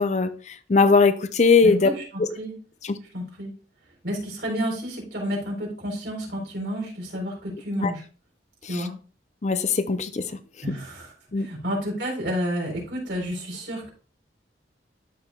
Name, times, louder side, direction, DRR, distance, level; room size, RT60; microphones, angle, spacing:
voice 1, 0.0-1.9 2.8-2.9 7.8-7.9 8.7-8.8 9.4-10.3 11.3-11.5, left 4 dB, 40° left, 0.5 m, -20 dB
voice 2, 1.6-2.5 3.1-3.6 4.0-8.0 8.6-8.9 10.6-13.9, equal, 80° right, 3.8 m, -30 dB
12.5 x 4.6 x 2.3 m
head